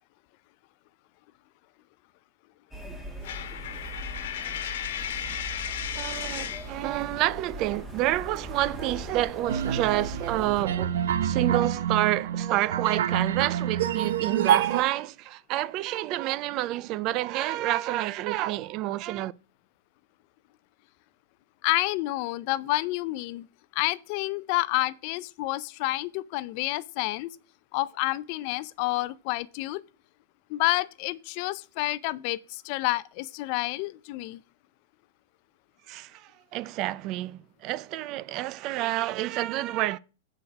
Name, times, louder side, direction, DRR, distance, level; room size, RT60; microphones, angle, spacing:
sound 1, 2.7-10.6, equal, 5° right, 1.5 m, -40 dB
Coin (dropping), 3.2-6.8, left 10 dB, 70° left, 1.2 m, -34 dB
voice 1, 6.0-19.3 35.9-40.0, right 15 dB, 35° right, 0.4 m, -29 dB
sound 2, 9.5-14.8, right 9 dB, 80° right, 0.8 m, -27 dB
voice 2, 21.6-23.5 23.7-27.3 27.7-29.8 30.5-34.4, left 19 dB, 45° left, 0.4 m, -29 dB
8.5 x 4.8 x 5.9 m
supercardioid pair, 150°, 0 cm